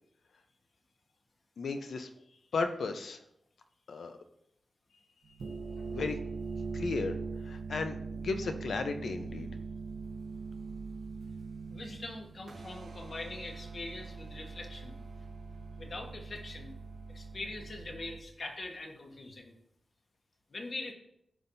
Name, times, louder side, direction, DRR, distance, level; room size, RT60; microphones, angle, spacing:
voice 1, 1.6-2.1 2.5-3.2 3.9-4.2 5.9-6.2 6.7-7.1 7.4-9.5, left 4 dB, 80° left, 7 dB, 0.8 m, -34 dB
sound 1, 5.2-18.2, right 4 dB, 90° right, 1.1 m, -42 dB
voice 2, 11.7-15.0 15.8-16.7 17.1-19.5 20.5-20.9, left 2 dB, 50° left, 3 dB, 1.4 m, -43 dB
14.5 x 5.6 x 2.7 m, 0.78 s
wide cardioid pair, 105°, 0 cm